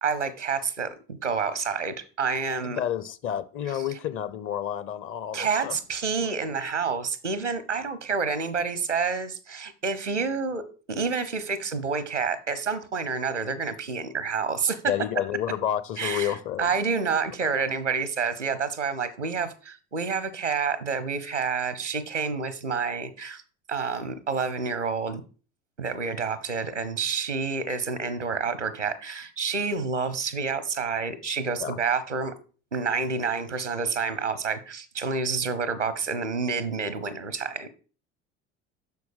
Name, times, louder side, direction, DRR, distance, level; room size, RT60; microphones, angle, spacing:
voice 1, 0.0-2.8 5.3-10.6 10.9-14.8 16.0-23.4 23.7-25.2 25.8-32.3 32.7-37.7, right 5 dB, 85° right, 0.8 m, -28 dB
voice 2, 2.6-5.8 14.9-16.7 17.4-17.5 31.6-31.8, left 10 dB, 35° left, 0.7 m, -30 dB
7.0 x 6.2 x 5.0 m
figure-of-eight pair, 65°, 35 cm